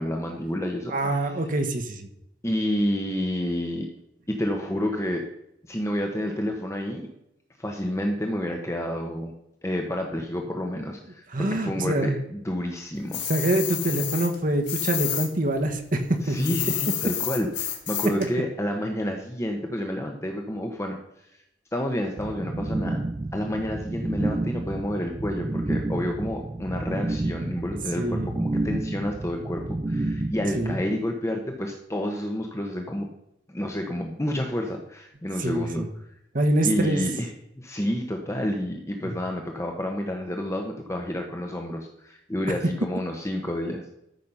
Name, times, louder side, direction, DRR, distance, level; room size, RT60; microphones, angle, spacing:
voice 1, 0.0-0.9 2.4-3.9 4.3-5.3 5.7-7.1 7.6-9.3 9.6-13.2 16.2-21.0 21.3-21.4 21.7-23.0 23.3-33.1 33.5-35.8 36.6-37.3 37.6-43.9, left 1 dB, 15° left, 3 dB, 1.1 m, -29 dB
voice 2, 0.9-2.1 11.3-12.2 13.3-16.4 28.0-28.3 30.5-30.8 35.4-35.9 36.3-37.0 39.0-39.1, right 1 dB, 50° right, 5 dB, 1.3 m, -25 dB
sound 1, 13.1-15.3 15.6-18.3, left 10 dB, 70° left, 2.2 m, -30 dB
sound 2, 22.2-30.7, right 2 dB, 20° right, 0.4 m, -30 dB
13.0 x 6.3 x 5.5 m, 0.80 s
head